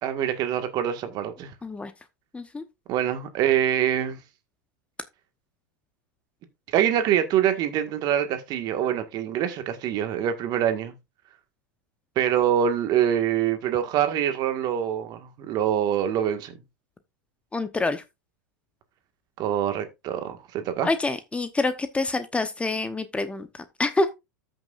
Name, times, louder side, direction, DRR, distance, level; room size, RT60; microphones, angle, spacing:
voice 1, 0.0-1.5 2.9-4.2 6.7-10.9 12.2-16.5 19.4-20.9, right 10 dB, 45° right, 1.7 m, -25 dB
voice 2, 17.5-18.0 20.8-24.1, left 3 dB, 10° left, 0.9 m, -27 dB
14.0 x 6.3 x 2.5 m
hypercardioid pair, 105°, 10 cm